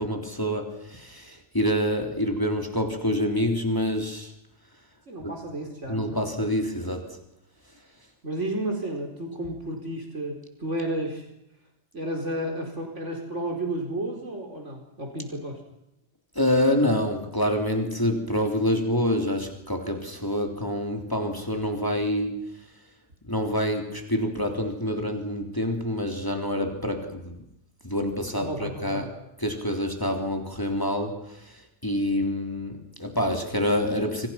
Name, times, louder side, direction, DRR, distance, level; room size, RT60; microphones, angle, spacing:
voice 1, 0.0-4.3 5.2-5.3 5.9-7.2 16.3-22.7 23.3-27.4 27.8-29.1 29.4-34.3, equal, 15° left, 3 dB, 3.5 m, -27 dB
voice 2, 5.1-6.2 8.2-11.3 11.9-15.6 28.3-29.1, right 1 dB, 75° right, 2 dB, 4.9 m, -32 dB
28.5 x 26.5 x 5.9 m, 0.86 s
omnidirectional pair, 1.2 m